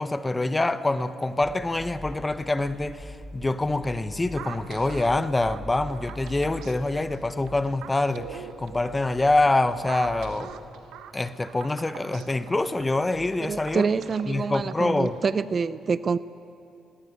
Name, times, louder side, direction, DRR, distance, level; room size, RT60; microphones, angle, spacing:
voice 1, 0.0-10.5 11.1-13.9 14.3-15.2, left 2 dB, 15° left, 0.9 m, -25 dB
sound 1, 1.4-14.5, equal, 10° right, 7.8 m, -44 dB
sound 2, 4.4-15.4, right 9 dB, 85° right, 1.1 m, -44 dB
voice 2, 13.4-16.2, right 5 dB, 40° right, 0.5 m, -26 dB
20.5 x 19.0 x 9.5 m
cardioid pair, 90°, 0 cm